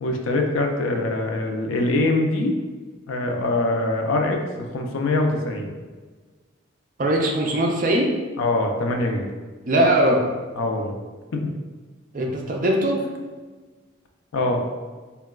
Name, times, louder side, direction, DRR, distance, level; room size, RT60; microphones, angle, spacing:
voice 1, 0.0-2.6 3.1-5.7 8.4-9.3 10.6-11.0 11.3-11.5 14.3-14.6, left 2 dB, 80° left, 3 dB, 0.4 m, -23 dB
voice 2, 7.0-8.1 9.7-10.2 12.1-13.1, right 1 dB, 40° right, 0 dB, 0.4 m, -20 dB
3.7 x 2.2 x 2.2 m, 1.4 s
head